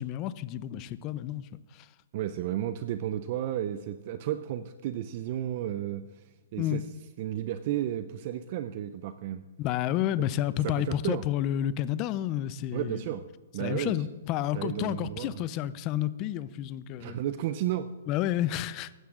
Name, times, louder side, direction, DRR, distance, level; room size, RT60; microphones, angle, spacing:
voice 1, 0.0-1.9 6.6-6.8 9.6-13.0 13.6-17.2 18.1-18.9, left 12 dB, 30° left, 0.5 m, -30 dB
voice 2, 2.1-6.8 7.2-9.4 10.2-10.3 10.6-11.2 12.7-13.3 13.5-14.1 14.5-15.4 17.0-17.9, right 12 dB, 40° right, 0.5 m, -33 dB
16.0 x 12.5 x 3.8 m
hypercardioid pair, 160°, 0 cm